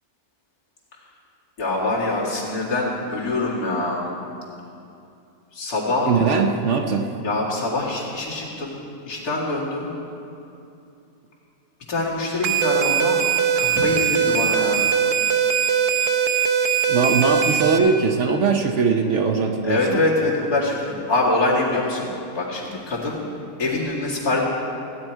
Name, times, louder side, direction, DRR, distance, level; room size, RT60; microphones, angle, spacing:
voice 1, 1.6-4.0 5.5-6.1 7.2-9.9 11.9-13.2 13.6-14.8 19.6-23.2 23.6-24.4, left 2 dB, 75° left, -5 dB, 2.7 m, -24 dB
voice 2, 6.1-7.1 16.9-20.0, right 5 dB, 60° right, 3 dB, 0.9 m, -20 dB
sound 1, 12.4-17.8, right 7 dB, 75° right, 1.2 m, -20 dB
16.0 x 9.6 x 4.5 m, 2.7 s
omnidirectional pair, 1.6 m